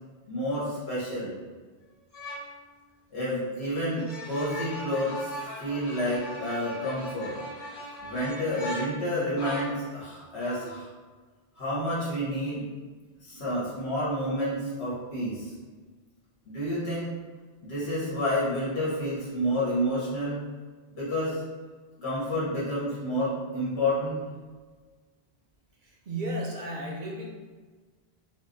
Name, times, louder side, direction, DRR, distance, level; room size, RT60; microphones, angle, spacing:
voice 1, 0.3-1.3 3.1-7.4 8.0-10.9 11.6-12.7 13.2-15.5 16.4-17.1 17.6-20.4 20.9-21.4 22.0-24.2, equal, 80° left, -7 dB, 1.5 m, -29 dB
sound 1, 2.1-2.5 3.9-9.8 10.4-10.8, equal, 60° left, 1.6 m, -39 dB
voice 2, 25.8-27.3, right 1 dB, 60° right, -1 dB, 0.6 m, -34 dB
3.5 x 2.1 x 3.8 m, 1.4 s
omnidirectional pair, 1.1 m